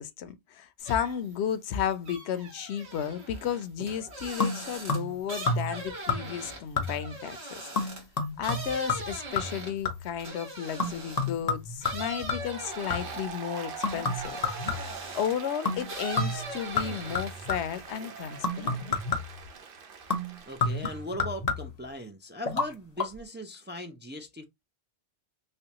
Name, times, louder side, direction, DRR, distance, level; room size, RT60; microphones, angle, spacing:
voice 1, 0.0-7.4 7.8-7.9 8.4-14.4 15.1-18.8, left 8 dB, 85° left, 0.9 m, -33 dB
sound 1, 0.8-1.3 1.7-11.4 11.8-15.5 15.8-17.5 17.9-18.5, right 1 dB, 80° right, 1.6 m, -41 dB
sound 2, 4.4-5.2 5.5-5.8 6.1-6.5 6.8-7.2 7.8-10.2 10.8-13.3 13.8-15.1 15.7-15.9 16.2-17.8 18.4-19.5 20.1-21.9 22.5-22.7 23.0-23.1, left 3 dB, 40° left, 0.9 m, -31 dB
Applause, 12.3-21.0, right 5 dB, 60° right, 0.8 m, -43 dB
voice 2, 20.5-24.4, equal, 15° right, 0.4 m, -39 dB
3.3 x 3.1 x 2.8 m
omnidirectional pair, 1.1 m